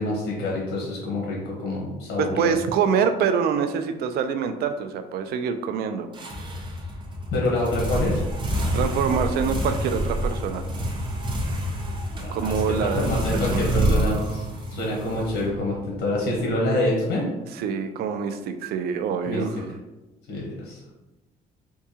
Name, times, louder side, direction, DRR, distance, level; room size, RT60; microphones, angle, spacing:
voice 1, 0.0-2.6 7.3-8.2 12.2-14.4 14.7-17.3 19.3-19.4 20.3-20.8, left 1 dB, 75° left, -3 dB, 1.1 m, -26 dB
voice 2, 2.2-6.1 8.7-10.6 12.3-13.2 13.5-13.6 17.6-19.6, right 6 dB, 70° right, 8 dB, 0.4 m, -25 dB
sound 1, 6.1-15.9, right 1 dB, 30° right, 0.8 m, -27 dB
4.5 x 2.3 x 2.7 m, 1.1 s
cardioid pair, 110°, 17 cm